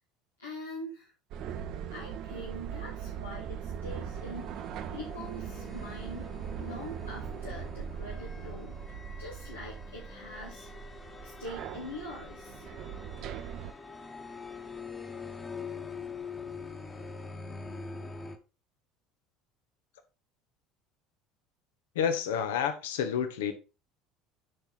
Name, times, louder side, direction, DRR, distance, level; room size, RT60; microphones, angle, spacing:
voice 1, 0.4-1.1 1.9-6.3 6.6-8.8 9.2-10.7 11.2-12.6, left 1 dB, 85° left, 1.8 m, -43 dB
sound 1, 1.3-13.7, right 8 dB, 50° right, 0.8 m, -40 dB
sound 2, 3.8-18.4, left 4 dB, 20° left, 1.5 m, -45 dB
voice 2, 21.9-23.5, left 8 dB, 65° left, 1.2 m, -29 dB
7.8 x 5.8 x 4.0 m
figure-of-eight pair, 65°, 0 cm